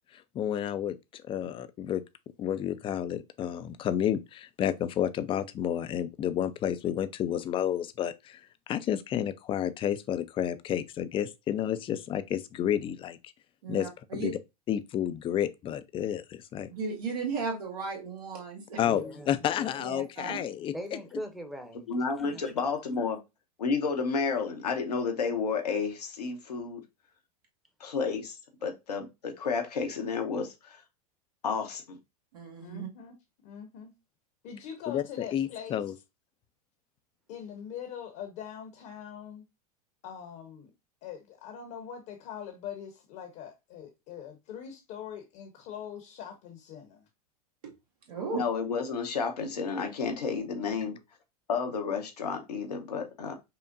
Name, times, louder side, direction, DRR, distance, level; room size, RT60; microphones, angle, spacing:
voice 1, 0.1-2.0 2.4-8.4 8.7-13.3 13.7-14.4 14.7-16.7 18.8-20.7 34.9-35.9, left 10 dB, 25° left, 0.4 m, -31 dB
voice 2, 13.6-14.3 16.7-18.8 19.8-20.4 32.3-32.9 47.6-47.7 48.1-48.4, right 4 dB, 75° right, 1.5 m, -35 dB
voice 3, 18.8-19.3 19.6-19.8 20.7-21.8 22.1-22.5, equal, ahead, 0.8 m, -40 dB
voice 4, 20.2-20.7 32.6-33.2 33.4-33.9 34.4-35.8 37.3-39.4 40.0-40.7 41.0-47.0, left 8 dB, 50° left, 0.9 m, -43 dB
voice 5, 21.9-23.2 23.6-26.8 27.8-28.4 28.6-30.8 31.4-32.0 48.3-51.0 51.5-53.3, left 5 dB, 85° left, 0.9 m, -31 dB
5.4 x 2.1 x 2.5 m
hypercardioid pair, 90°, 20 cm